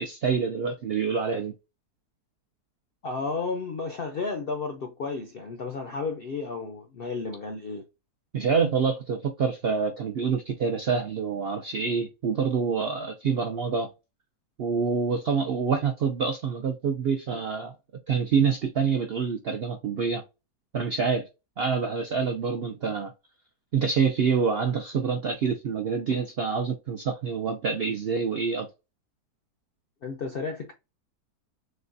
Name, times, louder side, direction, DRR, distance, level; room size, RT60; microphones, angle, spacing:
voice 1, 0.0-1.5 8.3-13.9 14.6-17.7 18.1-20.2 20.7-21.3 21.6-23.1 23.7-28.7, right 5 dB, 70° right, 0.5 m, -26 dB
voice 2, 3.0-7.8 30.0-30.7, left 4 dB, 65° left, 0.5 m, -32 dB
6.4 x 2.2 x 2.6 m
omnidirectional pair, 1.7 m